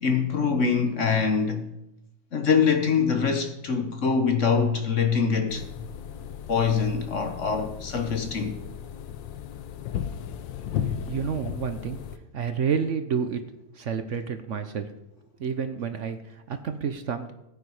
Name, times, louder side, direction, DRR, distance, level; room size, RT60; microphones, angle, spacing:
voice 1, 0.0-1.7 2.3-5.6 6.5-8.6, left 5 dB, 45° left, 1.2 m, -24 dB
sound 1, 5.5-12.2, left 9 dB, 80° left, 1.5 m, -35 dB
voice 2, 10.7-12.0 12.3-13.4 13.7-14.9 15.4-17.3, right 6 dB, 55° right, 0.8 m, -29 dB
15.0 x 9.2 x 4.8 m
omnidirectional pair, 2.0 m